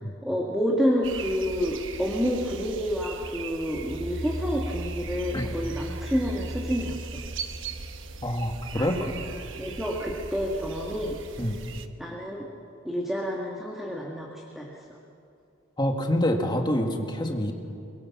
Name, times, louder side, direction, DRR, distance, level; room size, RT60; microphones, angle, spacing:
voice 1, 0.2-7.0 8.7-9.1 9.6-11.2 12.0-12.5 12.8-14.8, equal, ahead, -2 dB, 1.8 m, -29 dB
sound 1, 1.0-11.9, right 3 dB, 70° right, 1.1 m, -37 dB
voice 2, 8.2-9.1 11.4-11.6 15.8-17.5, left 1 dB, 20° left, 3 dB, 2.0 m, -26 dB
24.0 x 21.5 x 7.3 m, 2.6 s
head